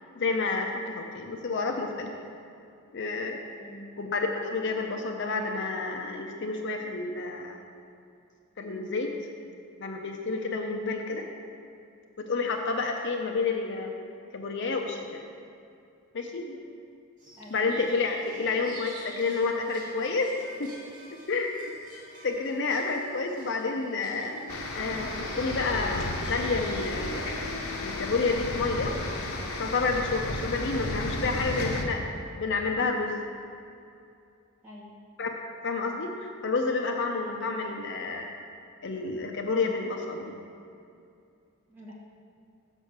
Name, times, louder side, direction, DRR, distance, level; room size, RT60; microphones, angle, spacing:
voice 1, 0.2-2.1 2.9-3.4 4.0-7.6 8.6-9.1 9.8-11.3 12.2-13.9 14.3-15.2 16.1-16.6 17.5-20.3 20.6-20.7 21.1-21.5 22.2-27.3 27.8-29.0 29.6-32.0 32.4-33.2 35.2-35.3 35.6-38.3 38.8-40.3, left 4 dB, 50° left, 3 dB, 0.6 m, -29 dB
voice 2, 3.6-3.9 17.4-17.6 18.4-18.5 34.6-34.9 37.2-37.3 41.7-41.9, equal, 10° right, -6 dB, 1.5 m, -47 dB
sound 1, 17.2-28.9, right 1 dB, 35° right, 2.1 m, -51 dB
sound 2, 24.5-31.8, left 2 dB, 75° left, 0.9 m, -33 dB
6.3 x 6.3 x 6.6 m, 2.5 s
head